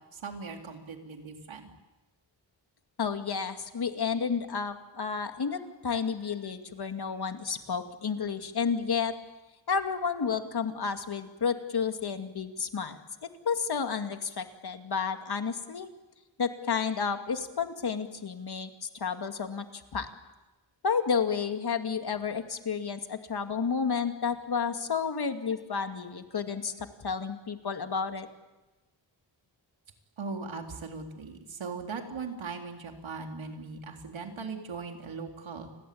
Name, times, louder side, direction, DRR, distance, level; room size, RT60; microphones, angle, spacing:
voice 1, 0.1-1.7 30.2-35.7, right 4 dB, 75° right, 3 dB, 3.9 m, -39 dB
voice 2, 3.0-9.1 9.7-15.9 16.4-20.1 20.8-28.3, left 6 dB, 55° left, 7 dB, 2.4 m, -31 dB
29.5 x 22.0 x 8.7 m, 1.1 s
wide cardioid pair, 135°, 47 cm